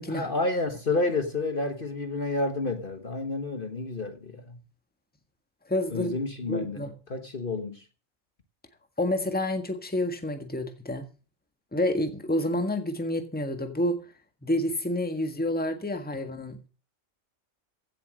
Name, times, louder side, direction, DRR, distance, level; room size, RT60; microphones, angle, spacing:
voice 1, 0.1-4.6 5.9-7.8, left 3 dB, 40° left, 1.5 m, -30 dB
voice 2, 5.7-6.1 6.5-6.9 9.0-11.0 11.7-14.0 14.4-16.7, left 1 dB, 5° left, 1.6 m, -29 dB
16.0 x 7.3 x 6.4 m
omnidirectional pair, 1.4 m